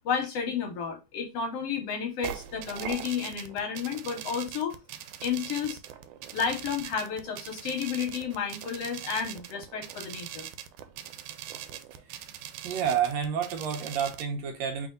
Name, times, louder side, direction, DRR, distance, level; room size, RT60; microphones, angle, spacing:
voice 1, 0.0-4.8 5.2-5.8 6.3-10.5, left 7 dB, 65° left, 1.7 m, -32 dB
sound 1, 2.2-14.2, right 11 dB, 90° right, 2.0 m, -41 dB
voice 2, 12.6-14.9, right 8 dB, 75° right, 1.8 m, -29 dB
4.1 x 3.4 x 3.7 m
omnidirectional pair, 3.4 m